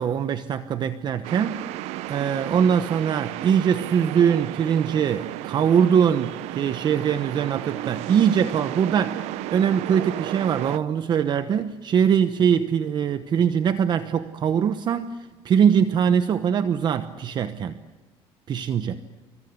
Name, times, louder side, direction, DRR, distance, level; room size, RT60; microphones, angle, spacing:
voice 1, 0.0-1.7 2.1-17.8 18.5-19.0, right 8 dB, 40° right, 11 dB, 1.0 m, -22 dB
sound 1, 1.2-10.8, right 15 dB, 80° right, 0.8 m, -33 dB
29.0 x 24.0 x 8.2 m, 1.3 s
cardioid pair, 135°, 11 cm